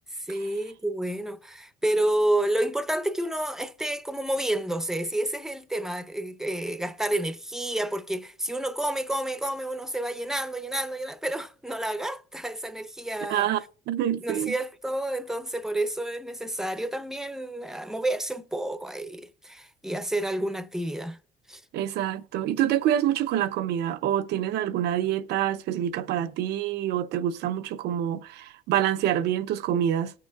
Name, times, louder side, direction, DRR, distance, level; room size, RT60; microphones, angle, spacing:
voice 1, 0.1-13.5 14.2-21.2 21.5-21.6, right 1 dB, 5° right, 0.6 m, -30 dB
voice 2, 13.3-13.6 13.9-14.5 21.7-30.1, right 11 dB, 80° right, 0.6 m, -26 dB
18.5 x 6.6 x 2.3 m
cardioid pair, 110°, 17 cm